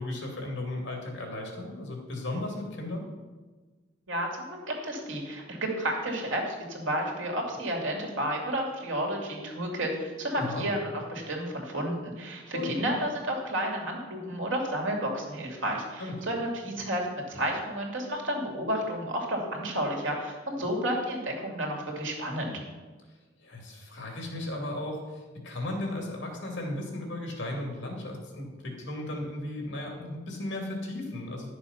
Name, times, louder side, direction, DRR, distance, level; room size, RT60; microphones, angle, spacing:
voice 1, 0.0-3.1 10.4-10.7 12.5-12.7 16.0-16.1 23.4-31.5, left 1 dB, 65° left, 0 dB, 2.7 m, -35 dB
voice 2, 4.1-22.6, right 1 dB, 85° right, 0 dB, 2.6 m, -31 dB
11.5 x 6.9 x 5.7 m, 1.3 s
head